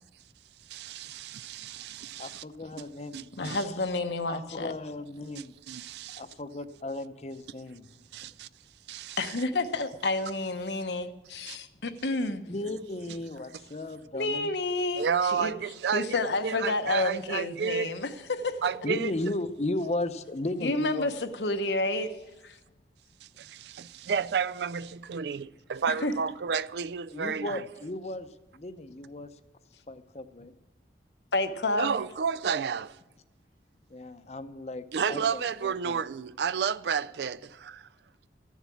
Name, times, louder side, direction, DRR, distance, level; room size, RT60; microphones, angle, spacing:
voice 1, 0.7-2.4 3.1-3.6 5.4-6.2 8.1-8.5 8.9-9.3 11.5-11.6 15.0-17.9 18.6-19.1 23.4-27.6 31.8-33.0 34.9-37.9, right 6 dB, 75° right, 0.4 m, -31 dB
voice 2, 2.2-3.7 4.3-5.5 6.1-8.0 12.5-14.5 18.8-21.1 27.1-28.3 28.5-29.3 29.9-30.5 33.9-36.0, left 2 dB, 40° left, 0.6 m, -35 dB
voice 3, 3.4-4.7 9.2-12.5 14.1-15.5 15.9-18.6 20.6-22.1 22.4-22.6 26.0-26.1 31.3-32.0, left 2 dB, 80° left, 0.9 m, -30 dB
13.5 x 7.3 x 8.4 m
head